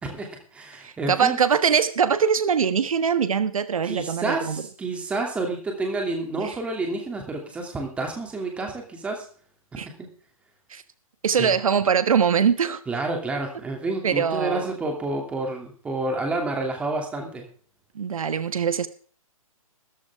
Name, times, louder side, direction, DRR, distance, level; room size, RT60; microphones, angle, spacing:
voice 1, 0.0-1.4 3.8-9.2 9.8-10.1 11.4-11.5 12.9-17.5, right 2 dB, 5° right, 2 dB, 2.6 m, -29 dB
voice 2, 0.8-4.6 6.4-6.5 9.8-9.9 10.7-10.8 11.2-12.8 14.0-14.7 17.9-18.9, right 7 dB, 70° right, 12 dB, 1.3 m, -22 dB
14.5 x 14.0 x 3.6 m, 0.42 s
hypercardioid pair, 160°, 18 cm